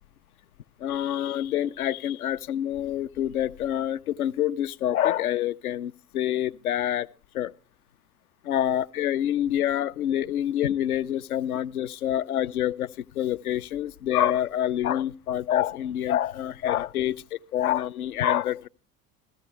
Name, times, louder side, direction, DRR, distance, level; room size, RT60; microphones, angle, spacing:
voice 1, 0.8-7.1 7.3-7.5 8.4-18.7, left 11 dB, 75° left, 0.6 m, -27 dB
16.0 x 14.0 x 3.2 m
figure-of-eight pair, 65°, 44 cm